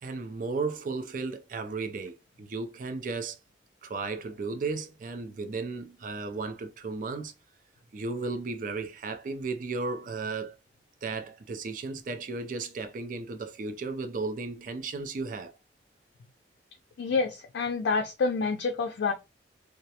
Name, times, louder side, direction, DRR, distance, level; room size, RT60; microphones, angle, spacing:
voice 1, 0.0-3.4 3.8-7.3 7.9-10.6 11.0-15.5, right 3 dB, 50° right, 0.4 m, -34 dB
voice 2, 17.0-19.1, left 4 dB, 75° left, 0.4 m, -28 dB
2.3 x 2.0 x 2.7 m
head